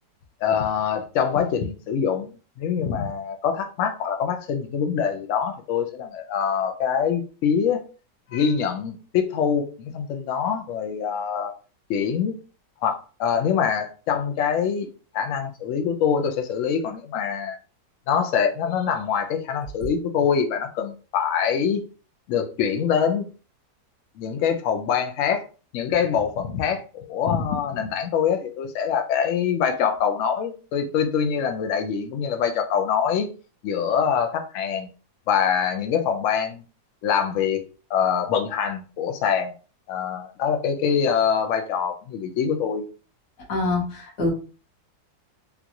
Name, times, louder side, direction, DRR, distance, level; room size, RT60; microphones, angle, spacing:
voice 1, 0.4-2.3 2.6-7.8 8.3-11.5 11.9-12.4 12.8-14.9 15.1-17.6 18.1-21.8 22.3-23.3 24.2-25.4 25.7-33.3 33.6-34.9 35.3-36.6 37.0-37.6 37.9-39.5 39.9-42.8, left 7 dB, 75° left, 0.7 m, -24 dB
voice 2, 43.5-44.3, left 2 dB, 55° left, 1.6 m, -25 dB
3.8 x 2.3 x 2.8 m
omnidirectional pair, 2.0 m